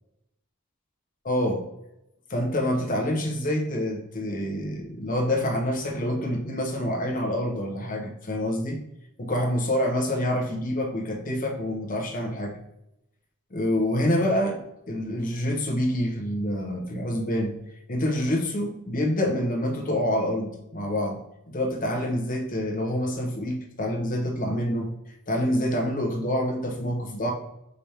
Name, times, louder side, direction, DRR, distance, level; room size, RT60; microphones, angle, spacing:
voice 1, 1.2-1.6 2.3-8.8 9.2-12.6 13.5-17.6 17.9-24.9 25.3-27.3, left 1 dB, 40° left, 1 dB, 0.8 m, -27 dB
5.1 x 2.9 x 3.2 m, 0.85 s
head